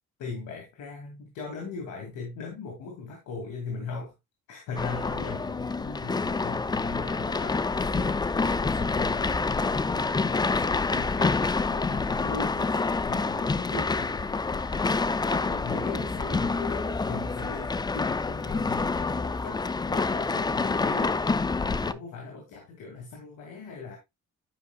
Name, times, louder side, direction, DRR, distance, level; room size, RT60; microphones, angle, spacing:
voice 1, 0.2-4.1 4.5-21.2 21.7-24.0, left 4 dB, 80° left, 2.3 m, -39 dB
sound 1, 4.8-21.9, left 4 dB, 15° left, 0.4 m, -27 dB
10.5 x 5.7 x 2.2 m
cardioid pair, 90°, 30 cm